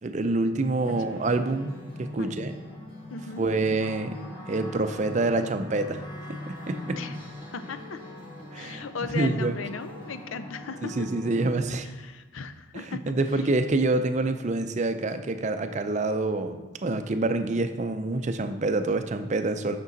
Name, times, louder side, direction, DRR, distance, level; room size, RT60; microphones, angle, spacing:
voice 1, 0.0-2.5 3.4-4.2 4.5-6.0 6.5-7.0 8.5-8.8 9.1-9.6 10.8-11.9 12.7-19.8, right 2 dB, 35° right, 9 dB, 0.4 m, -27 dB
sound 1, 0.8-11.5, left 1 dB, 25° left, 1.4 m, -42 dB
voice 2, 0.9-1.2 2.2-2.5 3.1-3.4 7.0-7.2 7.5-8.0 8.5-10.9 11.8-13.1, left 5 dB, 80° left, 11 dB, 0.5 m, -37 dB
8.2 x 6.0 x 3.9 m, 1.2 s
head